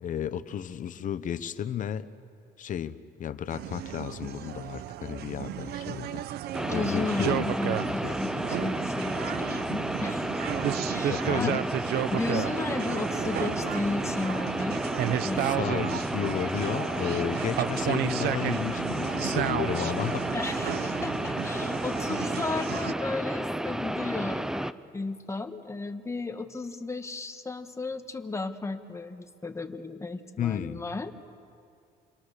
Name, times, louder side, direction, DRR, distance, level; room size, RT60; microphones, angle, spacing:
voice 1, 0.0-2.1 2.6-2.9 3.2-6.2 6.7-7.5 7.9-8.2 11.1-11.6 15.4-20.3 30.4-30.8, left 9 dB, 50° left, 13 dB, 1.0 m, -33 dB
sound 1, 3.5-22.9, right 12 dB, 75° right, 0.7 m, -33 dB
sound 2, 6.5-24.7, right 1 dB, 5° right, 0.6 m, -32 dB
voice 2, 6.7-10.3 10.9-11.5 12.1-14.8 15.2-15.7 20.3-31.1, left 3 dB, 15° left, 7 dB, 1.5 m, -34 dB
30.0 x 22.5 x 6.7 m, 2.4 s
cardioid pair, 110°, 17 cm